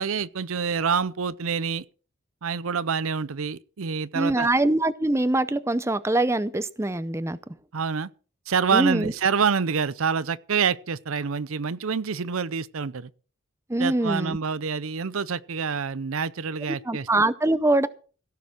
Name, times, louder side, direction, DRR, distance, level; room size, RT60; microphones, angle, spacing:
voice 1, 0.0-1.8 2.4-4.5 7.7-8.1 8.5-13.1 13.8-17.1, right 6 dB, 80° right, 0.6 m, -27 dB
voice 2, 4.1-7.4 8.7-9.1 13.7-14.4 16.8-17.9, right 2 dB, 15° right, 0.6 m, -23 dB
16.5 x 6.9 x 6.3 m
head